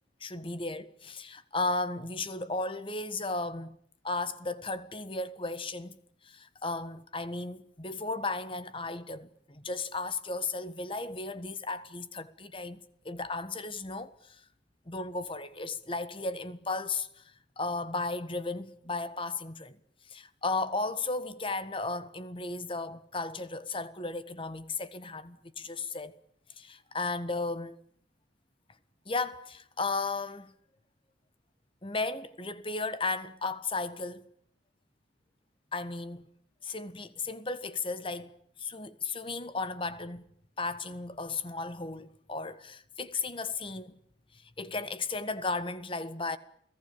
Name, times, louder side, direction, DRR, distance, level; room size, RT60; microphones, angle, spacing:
voice 1, 0.2-3.7 4.0-5.9 6.2-14.4 14.9-17.2 17.6-19.8 20.1-26.1 26.6-27.8 29.0-30.5 31.8-34.2 35.7-36.2 36.6-38.3 38.6-40.2 40.6-44.0 44.3-46.4, left 3 dB, 25° left, 1.5 m, -35 dB
29.0 x 18.5 x 8.7 m
head